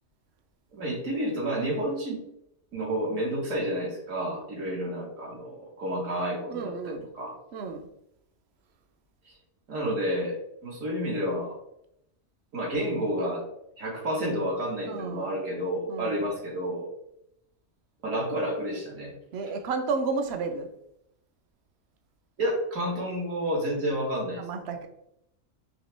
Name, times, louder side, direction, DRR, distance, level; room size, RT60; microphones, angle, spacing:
voice 1, 0.7-2.2 2.7-7.4 9.3-9.4 9.7-10.4 10.6-11.6 12.5-13.4 13.8-16.9 18.0-19.1 22.4-24.4, equal, 75° right, -2 dB, 1.8 m, -30 dB
voice 2, 6.5-7.1 7.5-7.9 14.8-15.4 15.9-16.2 19.3-20.7 24.4-24.9, right 4 dB, 60° right, 6 dB, 0.8 m, -32 dB
5.0 x 2.9 x 3.3 m, 0.79 s
omnidirectional pair, 1.4 m